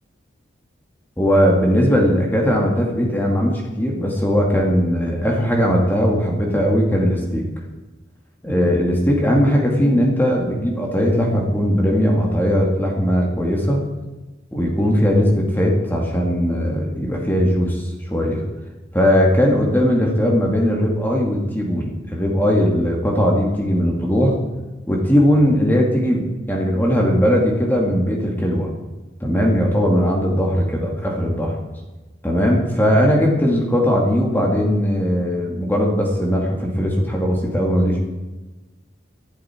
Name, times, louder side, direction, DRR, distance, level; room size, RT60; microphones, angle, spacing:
voice 1, 1.2-7.4 8.4-13.8 14.5-18.4 18.9-24.3 24.9-28.7 29.2-31.5 32.2-38.0, equal, 10° left, -1 dB, 2.3 m, -19 dB
19.0 x 12.0 x 4.6 m, 1.1 s
head